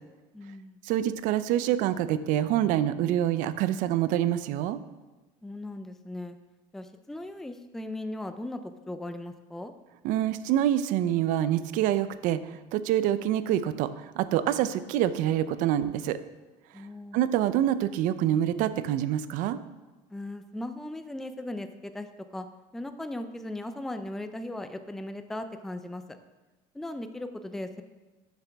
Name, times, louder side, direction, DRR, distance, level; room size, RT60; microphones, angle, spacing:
voice 1, 0.3-0.8 5.4-6.4 6.7-9.7 16.7-17.2 20.1-22.5 22.7-26.0 26.7-27.8, left 1 dB, 5° left, 8 dB, 0.4 m, -38 dB
voice 2, 0.8-4.8 10.0-12.4 12.7-16.2 17.1-19.6, right 11 dB, 60° right, 13 dB, 0.5 m, -26 dB
12.0 x 7.0 x 3.5 m, 1.2 s
cardioid pair, 140°, 15 cm